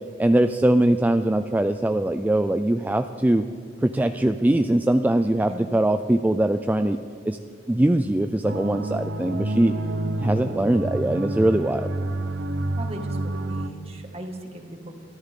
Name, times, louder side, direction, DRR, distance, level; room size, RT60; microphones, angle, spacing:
voice 1, 0.2-3.5 3.8-7.0 7.3-7.4 7.7-9.8 10.2-11.9, right 1 dB, 10° right, 8 dB, 0.3 m, -21 dB
sound 1, 8.4-13.7, right 2 dB, 75° right, 0.7 m, -29 dB
voice 2, 12.7-14.9, right 1 dB, 35° right, 3 dB, 2.0 m, -38 dB
23.0 x 13.5 x 3.7 m, 2.1 s
head